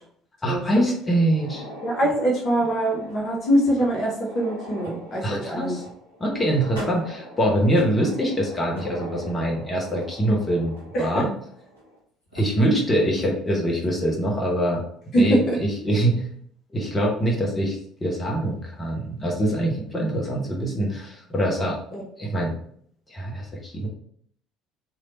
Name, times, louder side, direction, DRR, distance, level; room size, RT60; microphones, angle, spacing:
voice 1, 0.4-1.6 5.2-5.8 6.2-10.7 11.0-11.3 12.3-14.8 15.2-16.2 16.7-21.8 22.2-22.6 23.1-23.9, right 1 dB, 20° left, -2 dB, 1.1 m, -24 dB
sound 1, 1.2-12.0 12.3-12.4 13.2-13.3 13.8-13.9 15.3-15.5, equal, 90° left, 1.1 m, -41 dB
voice 2, 1.8-5.8 10.9-11.2 15.1-15.6 21.9-22.0, right 1 dB, 45° left, -3 dB, 1.0 m, -23 dB
3.2 x 2.8 x 3.9 m, 0.63 s
figure-of-eight pair, 55°, 0 cm